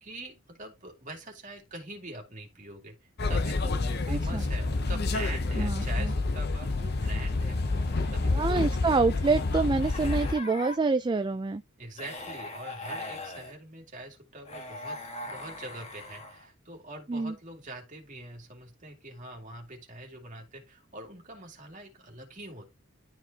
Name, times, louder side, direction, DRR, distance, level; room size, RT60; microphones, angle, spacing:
voice 1, 0.0-2.9 3.3-7.8 8.1-9.0 11.8-22.7, right 2 dB, 35° right, 2.4 m, -44 dB
sound 1, 3.2-10.3, left 3 dB, 50° left, 0.7 m, -28 dB
voice 2, 4.1-4.4 5.6-6.1 8.3-11.6 17.1-17.3, right 4 dB, 20° right, 0.3 m, -27 dB
sound 2, 6.6-8.6 9.7-10.8 12.0-13.6 14.5-16.5, left 2 dB, 30° left, 1.5 m, -42 dB
12.0 x 4.6 x 2.8 m
head